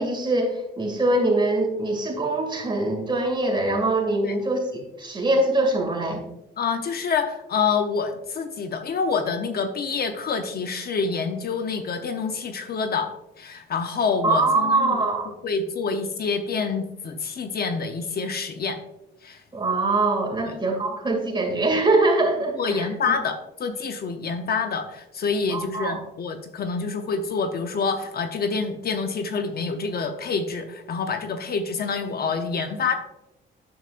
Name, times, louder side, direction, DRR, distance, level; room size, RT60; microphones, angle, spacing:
voice 1, 0.0-6.2 14.2-15.3 19.5-22.9 25.5-26.0, right 2 dB, 25° right, 1 dB, 2.3 m, -23 dB
voice 2, 6.6-13.1 13.4-18.8 19.2-19.4 20.4-20.6 22.5-23.3 23.6-32.9, left 5 dB, 50° left, 7 dB, 0.8 m, -27 dB
9.3 x 7.1 x 2.5 m, 0.91 s
cardioid pair, 90°, 20 cm